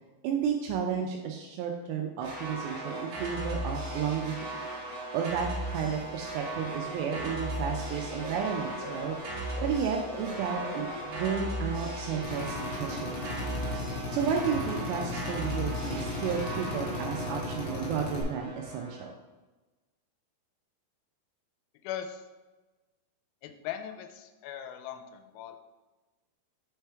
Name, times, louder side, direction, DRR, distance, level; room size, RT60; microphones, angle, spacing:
voice 1, 0.2-4.3 5.1-9.2 9.6-13.3 14.1-19.1, right 7 dB, 85° right, 2 dB, 2.4 m, -32 dB
sound 1, 2.2-19.1, right 1 dB, 65° right, 2.3 m, -37 dB
Bird / Cricket, 5.4-14.0, left 2 dB, 45° left, 2.4 m, -49 dB
Drill, 12.2-18.2, left 3 dB, 70° left, 2.9 m, -36 dB
voice 2, 21.8-22.2 23.4-25.6, left 10 dB, 90° left, 7 dB, 3.0 m, -39 dB
6.6 x 3.4 x 4.4 m, 1.2 s
omnidirectional pair, 5.4 m